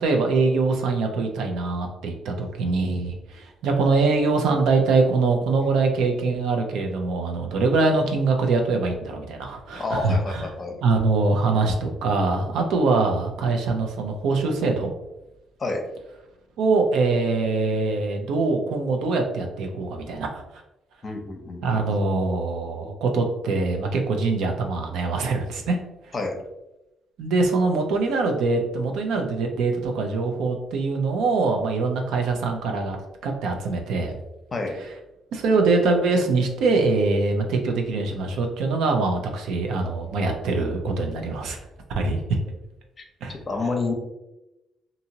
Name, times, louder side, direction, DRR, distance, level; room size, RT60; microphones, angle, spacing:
voice 1, 0.0-10.5 10.8-14.9 16.6-20.4 21.6-25.8 27.2-33.0 33.2-34.2 35.3-41.6 42.0-42.2 43.2-43.4, right 3 dB, 85° right, 3 dB, 0.5 m, -23 dB
voice 2, 9.8-10.8 15.6-15.8 21.0-22.0 26.1-26.4 34.5-34.7 43.0-43.1 43.5-43.9, left 3 dB, 35° left, 3 dB, 0.7 m, -29 dB
2.8 x 2.6 x 2.7 m, 0.94 s
cardioid pair, 90°, 0 cm